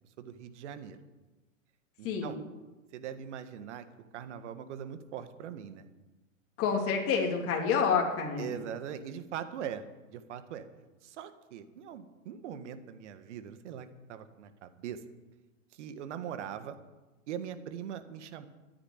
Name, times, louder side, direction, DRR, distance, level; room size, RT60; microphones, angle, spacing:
voice 1, 0.2-1.0 2.0-2.4 2.9-3.9 4.1-5.9 8.4-9.8 10.1-10.7 11.0-15.0 15.7-16.8 17.3-18.5, right 9 dB, 60° right, 10 dB, 1.7 m, -41 dB
voice 2, 6.6-8.6, left 6 dB, 35° left, 1 dB, 3.2 m, -28 dB
13.5 x 9.9 x 9.1 m, 1.1 s
hypercardioid pair, 120°, 40 cm